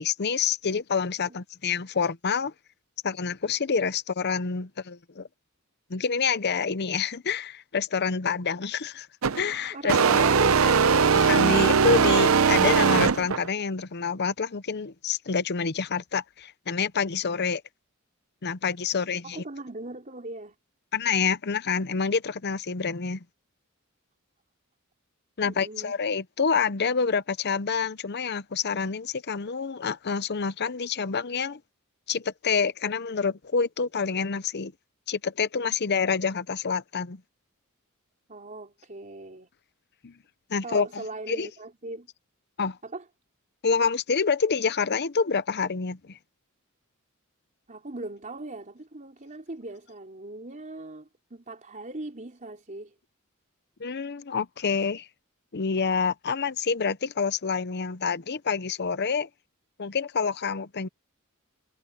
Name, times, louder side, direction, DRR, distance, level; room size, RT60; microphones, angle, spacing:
voice 1, 0.0-2.5 3.0-5.3 5.9-9.1 9.4-10.3 11.1-17.6 18.4-19.4 20.9-23.2 25.4-31.6 32.1-34.7 35.1-37.2 40.0-40.1 40.5-41.5 42.6-42.8 43.6-46.2 53.8-55.1 55.5-59.3 59.8-60.9, left 5 dB, 50° left, 0.8 m, -27 dB
sound 1, 9.2-9.4 9.9-13.5, right 5 dB, 70° right, 0.7 m, -20 dB
voice 2, 9.7-10.8 19.2-20.6 25.5-25.9 38.3-39.5 40.6-42.1 42.8-43.0 47.7-52.9, right 2 dB, 35° right, 3.7 m, -39 dB
head